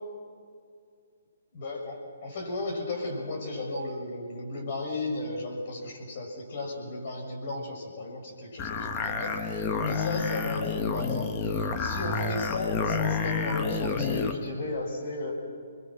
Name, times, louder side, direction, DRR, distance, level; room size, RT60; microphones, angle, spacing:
voice 1, 1.5-15.3, left 2 dB, 50° left, 0 dB, 6.8 m, -35 dB
sound 1, 8.6-14.4, left 5 dB, 20° left, 1.3 m, -29 dB
27.0 x 21.5 x 6.3 m, 2.2 s
hypercardioid pair, 140°, 0 cm